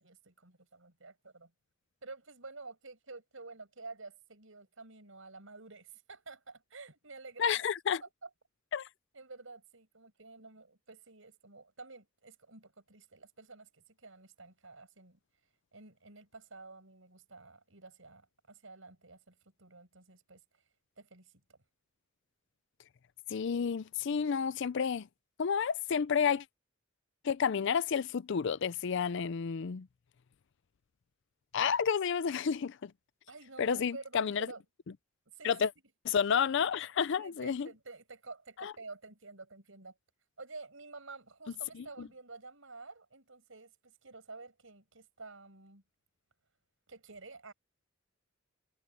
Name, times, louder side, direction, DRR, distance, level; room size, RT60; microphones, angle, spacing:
voice 1, 0.0-1.5 2.0-7.6 8.0-8.3 9.1-15.2 15.7-20.4 21.0-21.6 33.3-34.6 35.3-35.7 37.2-40.0 40.4-45.8 46.9-47.5, right 3 dB, 70° right, 6.2 m, -50 dB
voice 2, 7.4-8.0 8.7-8.9 23.3-25.1 25.4-26.4 27.2-29.9 31.5-32.9 33.6-34.5 35.4-35.7 36.1-37.7 38.6-38.7 42.0-42.1, left 7 dB, 60° left, 0.4 m, -30 dB
head